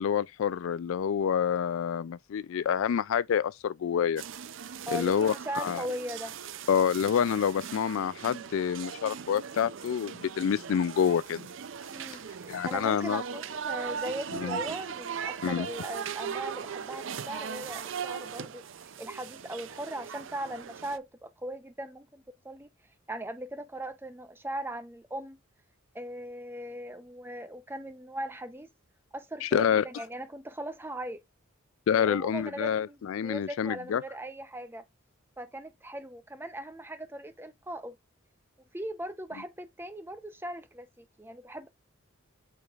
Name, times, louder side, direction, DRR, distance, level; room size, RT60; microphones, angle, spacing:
voice 1, 0.0-4.2 4.9-5.8 6.7-11.5 12.5-13.2 14.3-14.6 15.4-15.7 29.4-29.8 31.9-34.0, left 8 dB, 70° left, 0.3 m, -27 dB
sound 1, 4.2-21.0, right 7 dB, 60° right, 0.5 m, -39 dB
voice 2, 4.9-6.4 11.9-18.6 19.0-22.7 23.1-25.4 25.9-28.7 29.1-31.2 31.9-33.0 33.2-34.8 35.4-38.0 38.7-41.7, right 1 dB, 10° right, 0.7 m, -39 dB
8.3 x 4.6 x 2.4 m
head